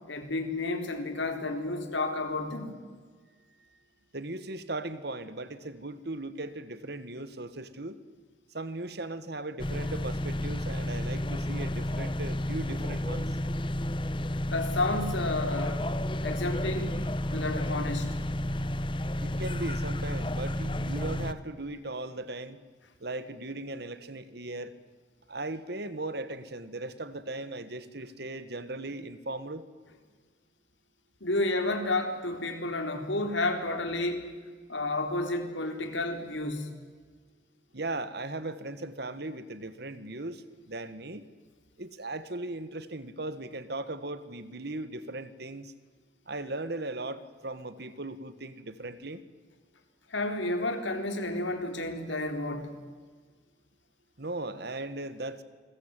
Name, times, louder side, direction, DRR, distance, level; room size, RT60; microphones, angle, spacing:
voice 1, 0.1-2.7 14.5-15.9 16.2-17.0 17.3-18.1 31.2-34.3 34.7-36.7 50.1-52.7, left 2 dB, 75° left, 6 dB, 4.0 m, -31 dB
voice 2, 4.1-8.0 8.5-13.4 19.2-22.6 23.0-24.7 25.3-29.6 37.7-41.3 41.8-45.7 46.3-49.2 54.2-55.4, right 2 dB, 55° right, 13 dB, 1.7 m, -38 dB
sound 1, 9.6-21.3, left 1 dB, 25° left, 1.0 m, -31 dB
29.0 x 21.5 x 9.2 m, 1.5 s
head